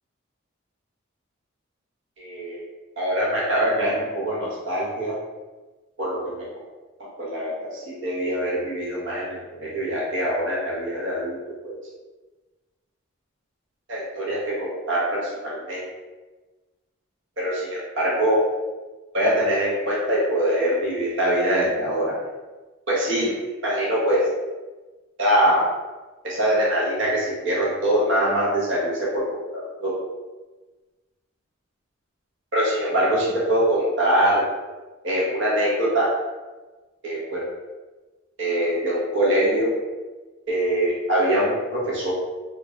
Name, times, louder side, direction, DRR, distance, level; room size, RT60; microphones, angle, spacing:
voice 1, 2.2-2.6 3.0-5.1 6.0-6.5 7.2-11.4 11.6-11.8 13.9-15.8 17.4-18.4 19.1-22.2 22.9-23.3 23.6-24.2 25.2-25.6 26.2-29.2 29.5-30.0 32.5-34.4 35.0-36.1 37.0-37.4 38.4-39.7 40.5-42.1, right 1 dB, 65° right, -6 dB, 1.0 m, -23 dB
2.6 x 2.5 x 3.1 m, 1.2 s
head